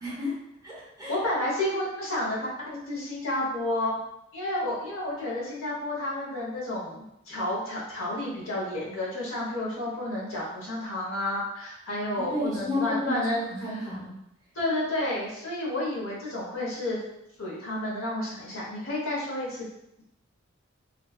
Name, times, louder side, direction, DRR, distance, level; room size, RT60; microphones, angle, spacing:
voice 1, 0.0-0.3 0.6-1.2 12.2-14.1, left 2 dB, 15° right, -8 dB, 0.8 m, -31 dB
voice 2, 1.1-2.4 2.6-3.9 4.3-13.4 13.7-13.8 14.5-17.0 17.4-19.7, left 1 dB, 90° left, -5 dB, 0.8 m, -31 dB
2.5 x 2.2 x 2.3 m, 0.83 s
head